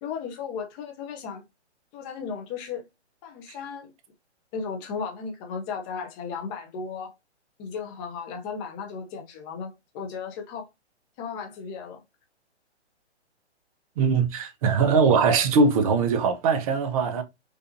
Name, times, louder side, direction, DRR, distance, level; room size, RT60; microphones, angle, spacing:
voice 1, 0.0-1.4 1.9-2.9 3.2-3.9 4.5-7.1 7.6-10.7 11.2-12.0, left 5 dB, 15° left, 0.5 m, -35 dB
voice 2, 14.0-17.2, right 5 dB, 30° right, 0.7 m, -21 dB
4.9 x 2.5 x 2.6 m
hypercardioid pair, 145°, 34 cm